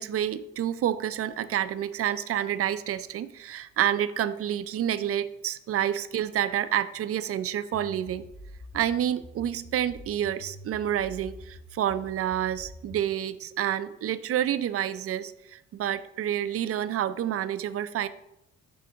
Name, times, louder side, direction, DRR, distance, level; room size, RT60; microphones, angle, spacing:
voice 1, 0.0-8.3 8.7-18.1, right 10 dB, 50° right, 14 dB, 0.4 m, -29 dB
sound 1, 7.7-13.1, equal, 40° left, 1.7 m, -46 dB
6.2 x 3.4 x 5.7 m, 0.89 s
cardioid pair, 90°, 30 cm